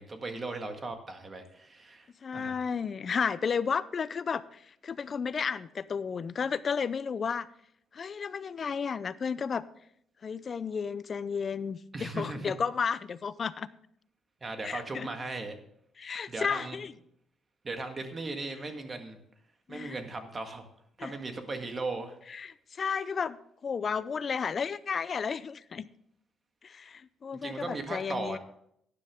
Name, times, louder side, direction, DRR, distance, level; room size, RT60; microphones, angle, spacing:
voice 1, 0.0-2.6 11.9-12.5 14.4-15.6 16.3-16.8 17.6-19.2 19.7-20.7 21.0-22.2 27.3-28.4, right 3 dB, 35° right, 6 dB, 1.7 m, -37 dB
voice 2, 2.2-7.5 7.9-9.6 10.2-13.7 14.6-15.1 16.0-16.9 19.7-20.0 21.0-21.1 22.3-23.4 23.6-25.9 26.6-28.4, left 6 dB, 45° left, 17 dB, 0.5 m, -33 dB
12.5 x 10.0 x 3.7 m, 0.71 s
cardioid pair, 90°, 0 cm